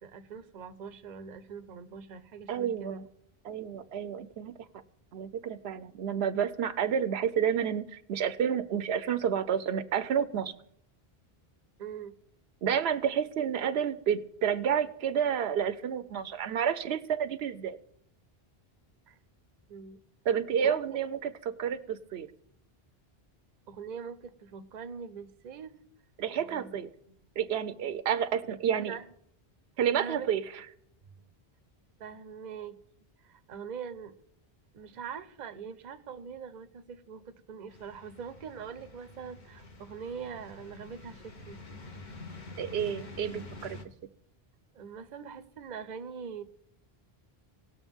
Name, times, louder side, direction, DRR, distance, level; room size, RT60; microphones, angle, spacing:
voice 1, 0.0-3.0 11.8-12.1 19.1-19.2 19.7-20.0 20.6-21.0 23.7-25.7 26.4-26.8 28.5-29.0 29.9-30.3 32.0-32.8 33.2-34.1 34.7-41.6 44.7-46.4, right 6 dB, 50° right, 11 dB, 0.7 m, -42 dB
voice 2, 2.5-3.0 3.4-4.5 5.1-10.5 12.6-17.8 20.3-22.3 26.2-26.9 27.4-28.9 29.8-30.4 42.6-43.8, right 8 dB, 80° right, 13 dB, 0.8 m, -30 dB
sound 1, 37.7-43.8, left 2 dB, 50° left, 1.1 m, -47 dB
19.0 x 6.5 x 3.5 m, 0.74 s
omnidirectional pair, 1.0 m